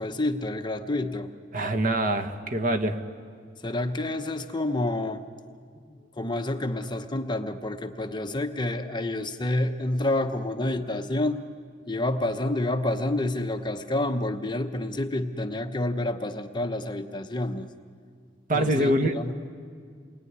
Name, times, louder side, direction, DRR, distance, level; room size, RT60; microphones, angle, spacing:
voice 1, 0.0-1.3 3.6-5.2 5.9-11.4 11.9-17.7 18.5-19.3, left 1 dB, 25° left, 6 dB, 1.0 m, -28 dB
voice 2, 1.5-3.0 18.5-19.2, right 1 dB, 50° right, 7 dB, 1.5 m, -24 dB
29.0 x 21.0 x 9.7 m, 2.1 s
head